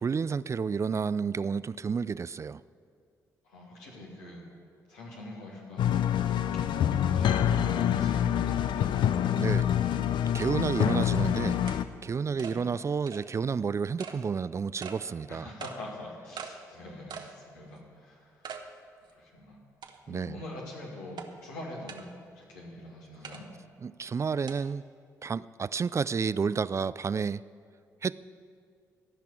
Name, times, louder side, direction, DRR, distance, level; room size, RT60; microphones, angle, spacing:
voice 1, 0.0-2.6 9.3-9.7 10.3-11.6 12.0-15.5 20.1-20.4 23.8-24.8 25.2-27.4 28.0-28.1, right 5 dB, 35° right, 17 dB, 0.3 m, -30 dB
voice 2, 3.4-4.5 4.9-5.9 6.5-8.9 12.3-12.6 15.3-18.6 19.0-19.6 20.1-23.5, left 1 dB, 85° left, -3 dB, 2.4 m, -44 dB
sound 1, 5.8-11.8, left 10 dB, 65° left, 0.5 m, -26 dB
sound 2, 9.7-9.8 10.4-10.5 10.9-11.0 11.7-11.8 12.4-12.6 13.1-13.2 14.0-14.2 14.8-15.0 15.6-15.8 16.4-16.5 17.1-17.3 17.8-17.9 18.4-18.6 19.1-19.2 19.8-20.2 21.2-21.3 21.9-22.0 23.2-23.4 24.5-24.6, right 6 dB, 60° right, 1.0 m, -41 dB
14.0 x 5.9 x 8.7 m, 2.3 s
hypercardioid pair, 45°, 9 cm